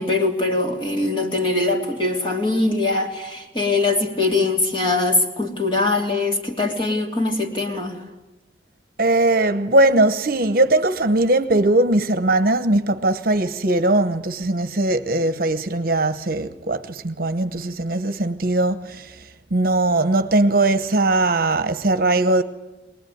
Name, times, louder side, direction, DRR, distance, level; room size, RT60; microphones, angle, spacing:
voice 1, 0.0-8.0, left 2 dB, 30° left, 3.0 m, -22 dB
voice 2, 9.0-19.2 19.5-22.4, right 2 dB, 50° right, 1.0 m, -20 dB
24.0 x 20.0 x 9.4 m
head